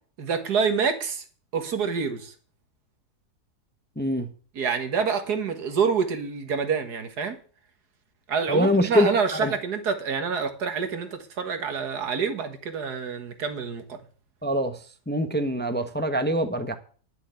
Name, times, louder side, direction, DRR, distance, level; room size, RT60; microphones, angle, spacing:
voice 1, 0.2-1.2 1.5-2.3 4.6-7.4 8.3-14.0, right 5 dB, 85° right, 2.1 m, -27 dB
voice 2, 4.0-4.3 8.5-9.5 14.4-14.8 15.1-16.7, equal, 10° left, 0.8 m, -24 dB
11.0 x 7.1 x 8.2 m
omnidirectional pair, 1.7 m